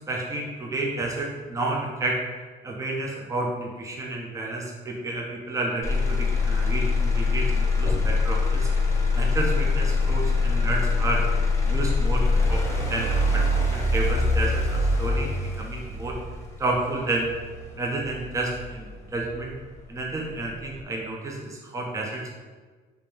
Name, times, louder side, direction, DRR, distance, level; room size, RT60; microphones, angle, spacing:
voice 1, 0.1-2.2 2.6-8.7 9.1-11.2 11.6-15.3 15.6-16.2 16.6-17.3 17.8-19.5 19.9-22.3, right 2 dB, 20° right, -1 dB, 0.7 m, -30 dB
Motor vehicle (road), 5.8-19.8 20.3-20.8, left 3 dB, 15° left, 0.9 m, -24 dB
5.0 x 2.9 x 3.5 m, 1.4 s
cardioid pair, 110°, 17 cm